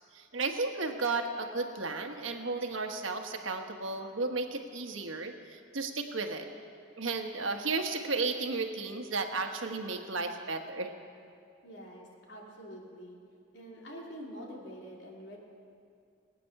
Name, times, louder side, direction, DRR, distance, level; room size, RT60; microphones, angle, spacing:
voice 1, 0.1-6.5 7.0-10.9, right 3 dB, 80° right, 5 dB, 1.3 m, -34 dB
voice 2, 11.6-13.2 13.5-15.4, equal, 60° left, -2 dB, 2.9 m, -46 dB
22.5 x 9.4 x 6.6 m, 2.4 s
head